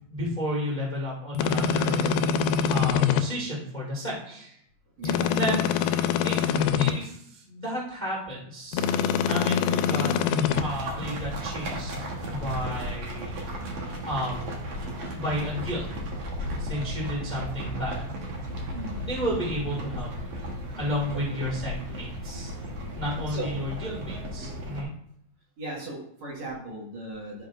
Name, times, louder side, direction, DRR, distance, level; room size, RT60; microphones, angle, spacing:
voice 1, 0.1-2.2 2.7-4.5 5.3-8.9 9.2-10.1 10.6-11.9 12.3-13.3 13.7-13.8 14.0-14.6 15.1-16.0 16.6-18.1 19.0-20.3 20.7-22.5 22.9-24.9, equal, 50° left, -5 dB, 0.5 m, -32 dB
sound 1, 1.4-3.2 5.0-6.9 8.7-10.6, left 7 dB, 80° left, 2.4 m, -24 dB
voice 2, 5.0-5.4 18.7-19.1 21.3-21.4 23.3-23.5 25.6-27.5, right 2 dB, 55° right, -4 dB, 2.4 m, -37 dB
sound 2, 10.5-24.8, equal, 70° right, 1.6 m, -35 dB
12.5 x 5.2 x 2.5 m, 0.69 s
omnidirectional pair, 4.7 m